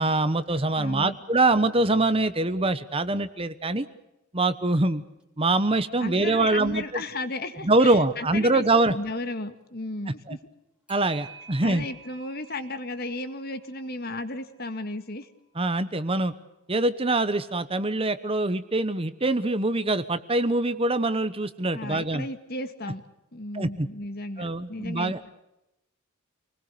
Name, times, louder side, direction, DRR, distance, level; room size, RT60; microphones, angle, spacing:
voice 1, 0.0-3.9 4.3-5.0 5.4-7.0 7.6-8.9 10.3-10.4 10.9-11.8 15.6-16.3 16.7-22.3 23.5-23.9 24.4-25.2, right 2 dB, 25° right, 12 dB, 1.0 m, -24 dB
voice 2, 0.8-1.2 6.0-8.7 8.9-10.4 11.6-15.3 21.7-23.0 23.3-25.3, left 2 dB, 45° left, 9 dB, 1.9 m, -34 dB
Clock, 4.7-4.8 5.2-5.3 8.1-8.3 10.9-15.1, right 6 dB, 5° right, 3.5 m, -50 dB
28.0 x 20.5 x 6.8 m, 0.89 s
head